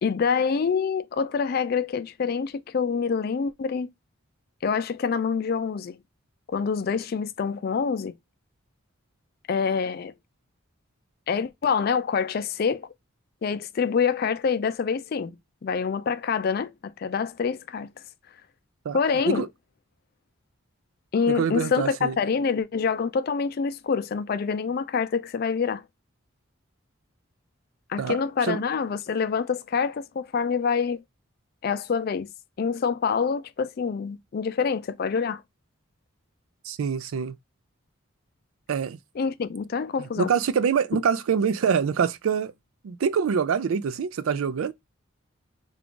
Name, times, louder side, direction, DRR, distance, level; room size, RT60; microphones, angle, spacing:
voice 1, 0.0-3.9 4.6-6.0 6.5-8.1 9.5-10.1 11.3-12.9 13.4-15.4 15.6-17.9 18.9-19.5 21.1-25.8 27.9-31.0 31.6-32.3 32.6-35.4 39.2-40.3, left 6 dB, 45° left, 0.3 m, -26 dB
voice 2, 21.3-22.2 28.0-28.6 36.6-37.4 38.7-39.0 40.2-42.5 42.8-44.7, right 6 dB, 80° right, 0.4 m, -25 dB
3.5 x 2.3 x 3.7 m
head